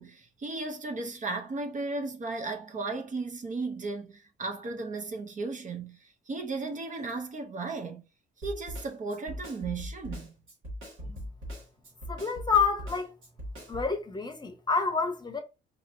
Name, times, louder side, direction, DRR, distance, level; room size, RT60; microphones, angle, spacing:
voice 1, 0.0-8.1 8.4-10.3 11.0-11.3, right 3 dB, 40° right, 0.7 m, -35 dB
Snare drum, 8.4-13.9, equal, 85° right, 1.9 m, -40 dB
voice 2, 12.1-13.1 13.7-15.4, left 5 dB, 20° left, 0.8 m, -28 dB
4.2 x 2.8 x 2.6 m
cardioid pair, 90°, 20 cm